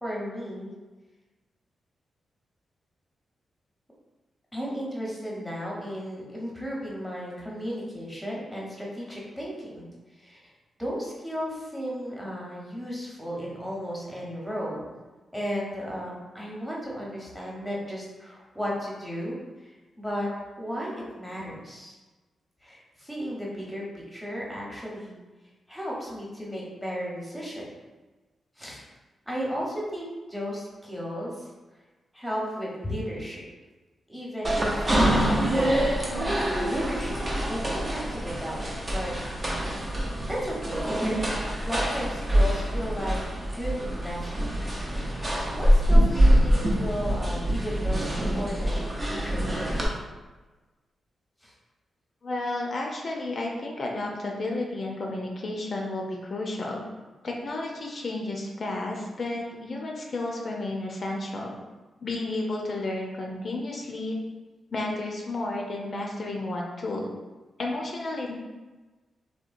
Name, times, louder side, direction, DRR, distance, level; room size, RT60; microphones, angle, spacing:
voice 1, 0.0-0.7 4.5-9.9 10.2-10.4 10.8-14.9 15.3-19.7 20.0-20.3 20.6-21.9 22.6-25.1 25.7-27.7 28.6-28.8 29.3-31.5 32.1-33.4 34.1-39.1 40.3-41.0 41.6-43.2 43.5-44.5 45.6-49.9 51.4-51.5, equal, ahead, -4 dB, 0.9 m, -34 dB
sound 1, 34.4-49.9, equal, 35° right, 0.6 m, -25 dB
voice 2, 52.2-56.8 57.2-61.6 62.0-64.2 64.7-67.1 67.6-68.4, left 2 dB, 55° left, -1 dB, 0.4 m, -32 dB
2.8 x 2.1 x 2.5 m, 1.2 s
cardioid pair, 60°, 0 cm